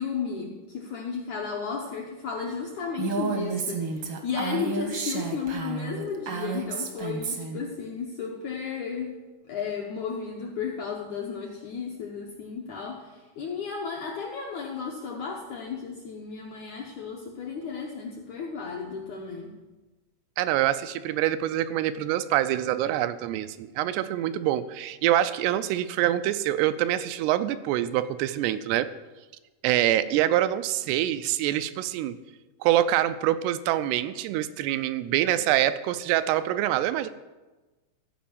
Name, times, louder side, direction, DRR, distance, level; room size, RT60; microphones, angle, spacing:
voice 1, 0.0-9.2 9.5-19.5, left 5 dB, 75° left, -1 dB, 1.8 m, -34 dB
Female speech woman speaking, 3.0-7.6, right 4 dB, 65° right, 1.4 m, -31 dB
voice 2, 20.4-28.9 29.6-32.2 32.6-37.1, right 13 dB, 90° right, 12 dB, 2.7 m, -25 dB
14.5 x 5.2 x 7.2 m, 1.2 s
omnidirectional pair, 4.6 m